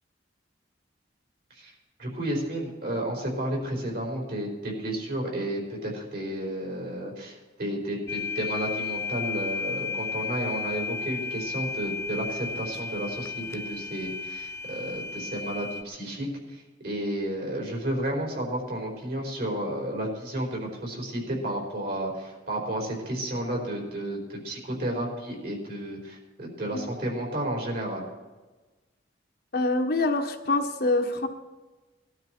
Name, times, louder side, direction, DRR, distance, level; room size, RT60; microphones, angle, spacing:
voice 1, 2.0-28.0, right 1 dB, 55° right, -1 dB, 4.8 m, -32 dB
sound 1, 8.1-15.8, left 5 dB, 15° left, 0.4 m, -34 dB
voice 2, 29.5-31.3, left 2 dB, 55° left, 4 dB, 1.4 m, -25 dB
19.5 x 12.0 x 4.6 m, 1.2 s
head